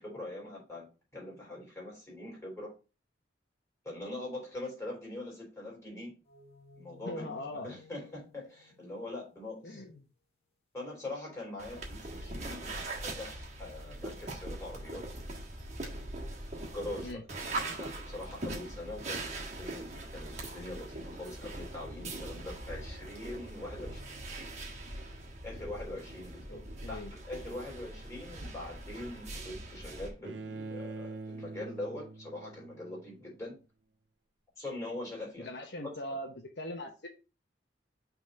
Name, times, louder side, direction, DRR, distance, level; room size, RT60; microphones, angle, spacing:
voice 1, 0.0-2.7 3.8-6.1 6.8-7.3 7.5-9.8 10.7-15.1 16.7-17.2 17.8-24.1 25.4-26.6 26.9-33.6 34.6-35.5 35.8-36.2, left 2 dB, 15° left, -3 dB, 3.6 m, -43 dB
sound 1, 6.3-9.7, left 3 dB, 35° left, 1.4 m, -57 dB
voice 2, 7.1-7.7 9.6-9.9 11.7-11.8 17.0-17.2 26.5-27.1 35.4-37.1, left 1 dB, 70° left, 3 dB, 1.0 m, -41 dB
sound 2, 11.6-30.1, right 2 dB, 40° right, 1.5 m, -41 dB
Bowed string instrument, 30.2-33.3, right 3 dB, 70° right, 0.6 m, -44 dB
6.1 x 3.6 x 5.2 m, 0.32 s
head